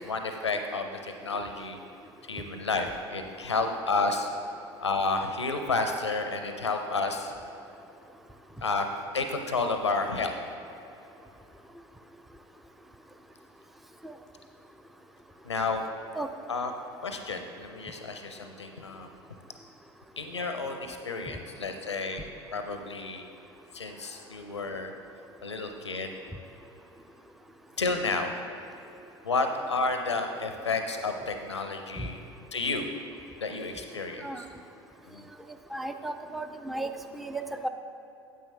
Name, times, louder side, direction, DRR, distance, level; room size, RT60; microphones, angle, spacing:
voice 1, 0.0-1.8 2.3-4.3 4.8-7.3 8.6-8.9 9.1-10.3 15.4-15.9 16.5-16.7 17.0-19.1 20.2-23.2 23.7-24.9 25.4-26.1 27.8-28.3 29.2-32.2 32.5-32.9 33.4-34.5 35.1-35.2, left 3 dB, 85° left, 6 dB, 0.5 m, -31 dB
voice 2, 35.7-37.7, right 2 dB, ahead, 7 dB, 0.4 m, -35 dB
9.2 x 8.1 x 3.2 m, 3.0 s
figure-of-eight pair, 70°, 14 cm